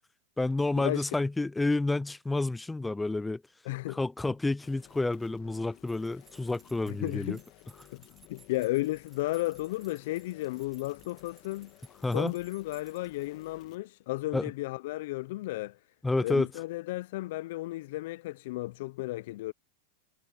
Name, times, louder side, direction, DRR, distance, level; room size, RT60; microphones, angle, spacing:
voice 1, 0.4-3.4 3.9-7.4 12.0-12.3 14.3-14.5 16.0-16.5, left 2 dB, 10° left, 0.3 m, -29 dB
voice 2, 3.7-4.0 6.9-7.4 7.9-8.0 8.3-11.7 12.1-15.8 16.2-19.5, left 18 dB, 70° left, 0.5 m, -34 dB
sound 1, 4.6-13.8, left 19 dB, 50° left, 1.7 m, -57 dB
sound 2, 5.8-13.6, right 4 dB, 15° right, 1.9 m, -61 dB
hypercardioid pair, 115°, 0 cm